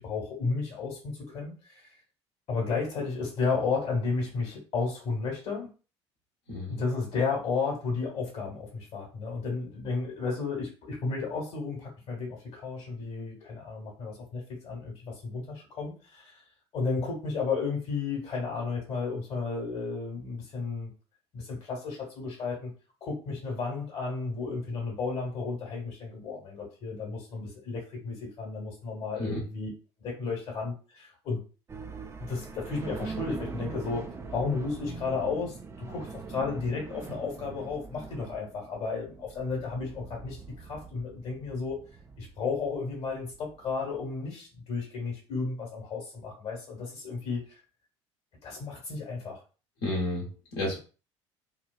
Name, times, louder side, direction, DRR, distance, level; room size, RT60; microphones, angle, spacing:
voice 1, 0.0-1.9 2.5-5.7 6.7-16.4 16.7-20.9 21.3-22.7 23.0-29.7 30.0-31.4 32.2-34.1 34.3-41.8 42.2-47.6 48.4-49.4, left 4 dB, 40° left, -2 dB, 1.1 m, -33 dB
voice 2, 6.5-6.8 29.2-29.4 49.8-50.8, left 1 dB, 60° left, -3 dB, 0.9 m, -31 dB
sound 1, 31.7-44.1, right 4 dB, 20° right, 0.4 m, -43 dB
2.9 x 2.3 x 2.3 m, 0.35 s
figure-of-eight pair, 60°, 15 cm